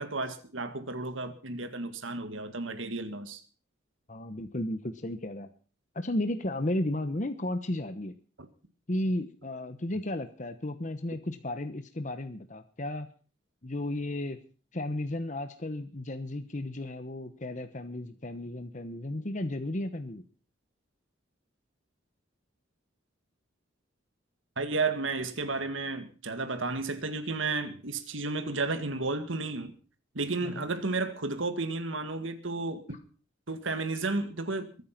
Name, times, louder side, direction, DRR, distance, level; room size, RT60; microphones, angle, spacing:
voice 1, 0.0-3.4 24.6-29.7 30.2-32.8 33.5-34.7, right 3 dB, 85° right, 1.9 m, -32 dB
voice 2, 4.1-5.5 5.9-8.1 8.9-13.1 13.6-14.4 14.7-20.2 30.4-30.6, left 1 dB, 40° left, 1.1 m, -34 dB
22.5 x 9.3 x 5.9 m
head